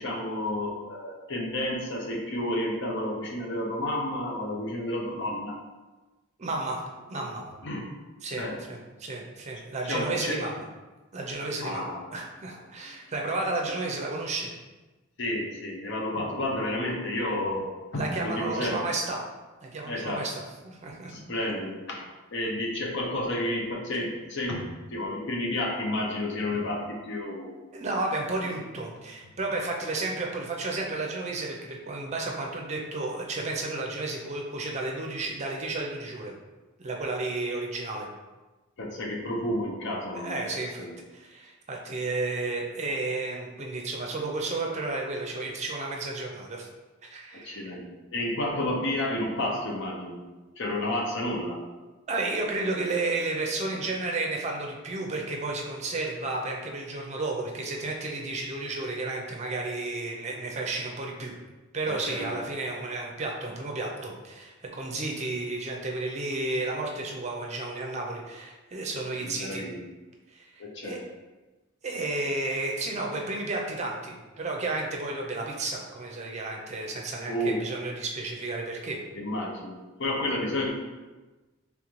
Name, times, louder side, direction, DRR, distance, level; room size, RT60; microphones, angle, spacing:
voice 1, 0.0-5.6 7.6-7.8 8.3-8.6 9.8-10.5 11.6-12.2 12.9-13.0 15.2-18.9 19.9-20.3 21.1-27.5 38.8-40.5 40.8-40.9 47.3-50.3 50.6-51.6 61.9-62.4 65.2-65.4 69.2-69.8 70.6-71.0 77.3-77.6 79.1-80.7, left 1 dB, 60° left, -1 dB, 0.7 m, -31 dB
voice 2, 6.4-7.4 8.2-10.6 11.1-11.9 12.1-14.5 17.9-19.2 19.6-20.3 20.6-21.1 27.7-36.3 36.8-38.1 40.1-40.9 41.1-46.7 47.0-47.7 52.1-61.3 61.7-69.7 70.3-71.0 71.8-79.0, right 2 dB, 35° right, 0 dB, 0.5 m, -32 dB
3.7 x 3.5 x 3.1 m, 1.2 s
head